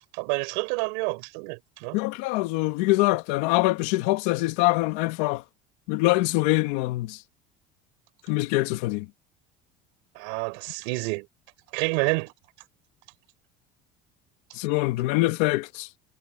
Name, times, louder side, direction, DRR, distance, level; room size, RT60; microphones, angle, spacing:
voice 1, 0.1-2.0 10.1-11.3 11.7-12.3, right 30 dB, 85° right, 4.6 m, -28 dB
voice 2, 1.9-5.4 5.9-7.2 8.3-9.1 14.5-15.9, left 20 dB, 85° left, 1.9 m, -24 dB
cardioid pair, 135°, 21 cm